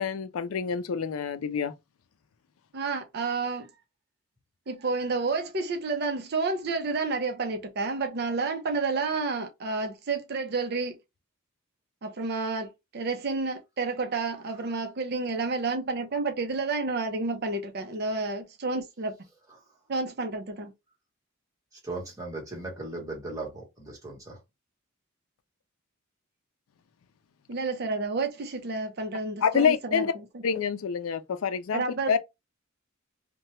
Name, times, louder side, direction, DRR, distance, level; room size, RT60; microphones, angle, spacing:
voice 1, 0.0-1.7 29.4-30.1 30.4-32.2, left 6 dB, 90° left, 0.4 m, -27 dB
voice 2, 2.7-3.7 4.7-11.0 12.0-19.1 19.9-20.7 27.5-30.2 31.7-32.2, right 3 dB, 50° right, 0.6 m, -30 dB
voice 3, 21.8-24.4, right 2 dB, 15° right, 1.4 m, -37 dB
2.8 x 2.2 x 3.1 m
head